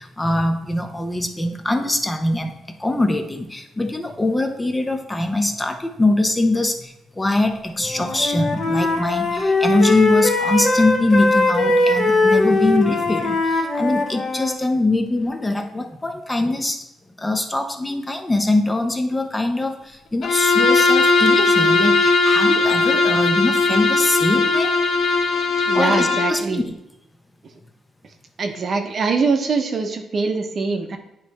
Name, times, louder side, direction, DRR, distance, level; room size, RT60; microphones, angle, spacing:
voice 1, 0.0-2.5 2.8-16.8 17.2-24.7 25.7-26.6, left 2 dB, 15° left, 5 dB, 0.7 m, -22 dB
Wind instrument woodwind instrument, 7.8-14.6, left 2 dB, 45° left, 1.3 m, -20 dB
Bowed string instrument, 20.2-26.4, left 3 dB, 65° left, 0.7 m, -18 dB
voice 2, 25.7-26.6 28.4-31.0, right 4 dB, 50° right, 5 dB, 0.8 m, -23 dB
9.0 x 3.1 x 4.1 m, 0.88 s
cardioid pair, 90°, 0 cm